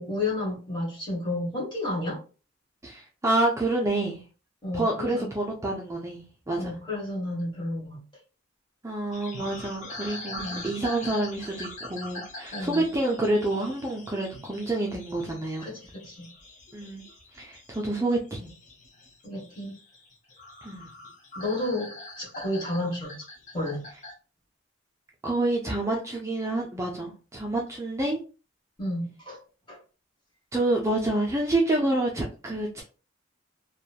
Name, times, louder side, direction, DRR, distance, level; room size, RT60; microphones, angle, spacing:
voice 1, 0.0-2.2 4.6-5.3 6.5-8.0 10.3-10.7 12.5-12.9 15.6-16.3 19.2-19.8 21.3-23.3 23.5-23.8 28.8-29.4 29.7-29.8, left 1 dB, 25° left, -5 dB, 1.4 m, -31 dB
voice 2, 2.8-4.2 4.7-6.7 8.8-15.7 16.7-17.0 17.3-18.5 20.6-20.9 25.2-28.2 30.5-32.8, right 2 dB, 15° right, -1 dB, 0.4 m, -28 dB
sound 1, 9.1-24.1, left 2 dB, 40° left, 0.8 m, -43 dB
2.9 x 2.2 x 2.4 m, 0.35 s
head